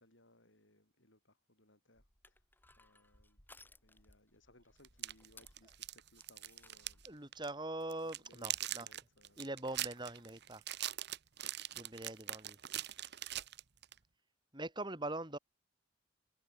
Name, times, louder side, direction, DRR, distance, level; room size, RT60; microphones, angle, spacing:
voice 1, 0.0-2.4 2.8-3.4 3.8-7.3 8.0-8.6 8.9-9.5, left 1 dB, 60° left, 7.2 m, -67 dB
Crushing, 2.0-7.2, left 2 dB, 10° left, 6.0 m, -63 dB
sound 1, 4.8-7.1 7.3-7.5 7.9-14.0, right 13 dB, 55° right, 1.3 m, -42 dB
voice 2, 7.0-8.9 9.4-10.6 11.7-12.6 14.5-15.4, right 2 dB, 20° right, 4.1 m, -42 dB
head